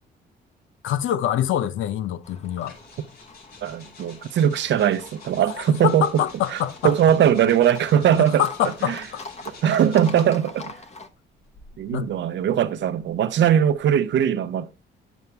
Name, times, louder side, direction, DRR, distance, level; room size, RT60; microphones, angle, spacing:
voice 1, 0.8-2.8 5.5-6.9 8.2-9.2 11.9-12.1, left 11 dB, 80° left, 0.7 m, -25 dB
Livestock farm animals working animals, 2.2-11.1, left 3 dB, 35° left, 1.0 m, -43 dB
sound 1, 2.6-10.5 11.4-13.9, left 3 dB, 60° left, 4.7 m, -49 dB
voice 2, 3.6-6.2 6.5-8.4 8.9-9.0 9.5-10.7 11.8-14.7, right 9 dB, 65° right, 0.8 m, -20 dB
9.5 x 7.2 x 3.3 m
cardioid pair, 90°, 20 cm